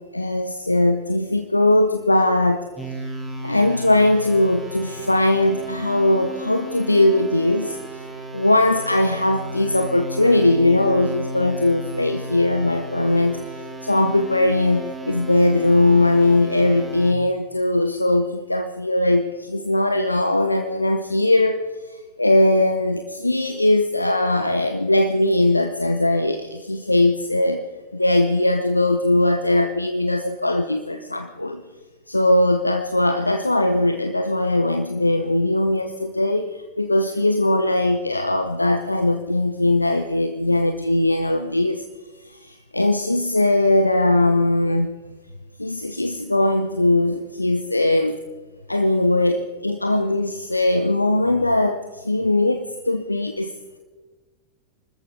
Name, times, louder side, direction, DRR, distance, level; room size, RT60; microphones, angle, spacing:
voice 1, 0.0-2.7 3.4-7.8 8.3-13.4 13.8-21.6 22.2-27.6 27.9-31.6 32.1-36.5 36.8-41.8 42.7-44.9 45.6-48.2 48.7-53.5, left 1 dB, 85° left, 7 dB, 0.8 m, -20 dB
sound 1, 2.8-17.1, right 1 dB, 5° right, 2.1 m, -34 dB
25.0 x 13.5 x 3.6 m, 1.3 s
figure-of-eight pair, 90°, 0 cm